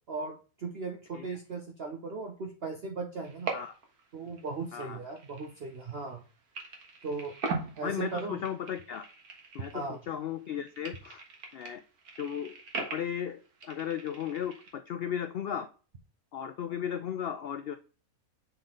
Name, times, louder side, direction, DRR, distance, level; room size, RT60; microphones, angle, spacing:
voice 1, 0.1-3.5 4.1-6.2 7.0-7.3 7.8-8.4 9.7-10.0, right 4 dB, 50° right, 1 dB, 1.0 m, -37 dB
sound 1, 3.2-4.0 4.3-6.2 6.5-10.1 10.4-14.7, right 4 dB, 80° right, 1.8 m, -41 dB
voice 2, 7.8-9.1 9.5-11.2 11.5-11.8 12.2-15.7 16.3-17.8, left 9 dB, 80° left, 10 dB, 0.5 m, -35 dB
6.8 x 3.9 x 3.8 m, 0.36 s
omnidirectional pair, 1.5 m